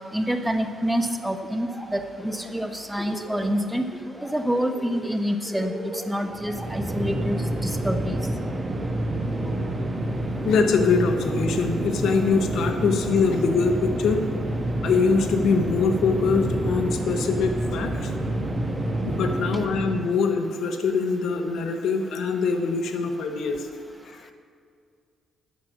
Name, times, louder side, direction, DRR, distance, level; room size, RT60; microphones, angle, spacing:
voice 1, 0.1-3.8 4.3-8.2, equal, 5° right, 7 dB, 0.9 m, -27 dB
Laughter, 1.4-1.9 2.2-3.6 3.9-4.3 4.6-7.5, equal, 15° left, 1.9 m, -39 dB
sound 1, 6.3-20.2, right 1 dB, 25° right, 1.3 m, -28 dB
voice 2, 10.4-14.2 14.8-18.1 19.0-23.7 24.1-24.2, left 5 dB, 70° left, 6 dB, 1.1 m, -23 dB
9.4 x 8.2 x 6.4 m, 2.3 s
cardioid pair, 90°, 0 cm